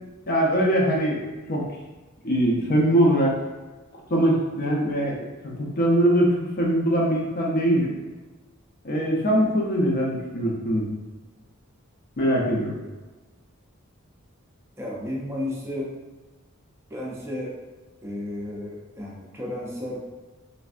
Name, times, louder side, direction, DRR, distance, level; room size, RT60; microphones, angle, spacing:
voice 1, 0.3-1.2 1.5-1.6 2.2-3.4 4.1-5.2 5.4-8.0 8.8-10.9 12.2-12.8, right 1 dB, 45° left, -2 dB, 0.6 m, -22 dB
voice 2, 14.8-15.9 16.9-17.5 18.0-20.1, left 1 dB, 15° right, -5 dB, 0.5 m, -33 dB
3.3 x 2.5 x 2.4 m, 1.2 s
head